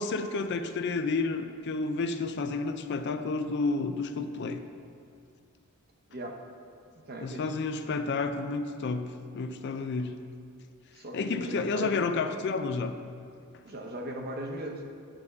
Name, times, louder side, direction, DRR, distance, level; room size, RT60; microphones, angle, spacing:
voice 1, 0.0-4.6 7.2-10.2 11.1-13.0, left 3 dB, 50° left, 8 dB, 0.4 m, -31 dB
voice 2, 6.1-6.4 7.1-7.5 10.9-12.0 13.6-14.8, right 1 dB, 45° right, 2 dB, 0.8 m, -38 dB
8.7 x 3.5 x 6.5 m, 2.4 s
head